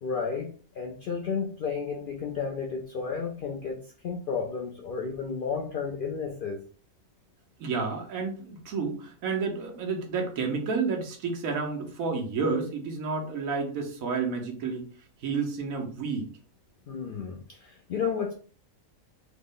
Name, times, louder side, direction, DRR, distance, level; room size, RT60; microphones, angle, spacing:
voice 1, 0.0-6.6 16.9-18.3, left 5 dB, 70° left, 1 dB, 0.5 m, -32 dB
voice 2, 7.6-14.9 15.2-16.3, right 4 dB, 80° right, 2 dB, 1.2 m, -30 dB
3.1 x 2.0 x 3.6 m, 0.42 s
omnidirectional pair, 1.4 m